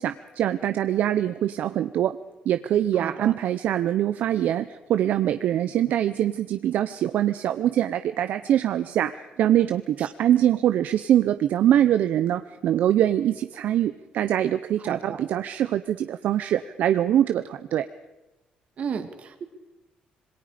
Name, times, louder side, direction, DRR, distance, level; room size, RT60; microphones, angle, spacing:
voice 1, 0.0-2.2 2.5-17.9, right 11 dB, 70° right, 11 dB, 0.8 m, -23 dB
voice 2, 2.9-3.3 10.0-10.1 14.8-15.2 18.8-19.4, right 7 dB, 50° right, 7 dB, 2.5 m, -34 dB
26.5 x 21.5 x 5.1 m, 1.0 s
cardioid pair, 135°, 3 cm